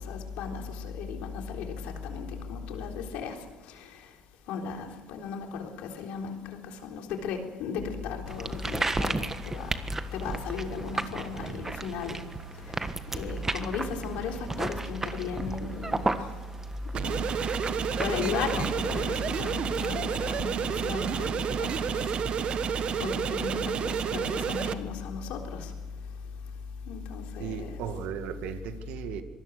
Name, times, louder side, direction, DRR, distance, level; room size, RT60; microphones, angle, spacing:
voice 1, 0.0-4.2 4.5-16.4 17.0-17.3 18.0-25.7 26.8-27.8, left 6 dB, 75° left, 3.7 m, -35 dB
sound 1, 8.3-22.9, right 2 dB, 20° right, 1.5 m, -35 dB
sound 2, 16.9-24.7, right 8 dB, 50° right, 1.3 m, -30 dB
voice 2, 27.4-29.2, right 8 dB, 75° right, 1.8 m, -36 dB
25.5 x 19.5 x 6.6 m
supercardioid pair, 85°, 2 cm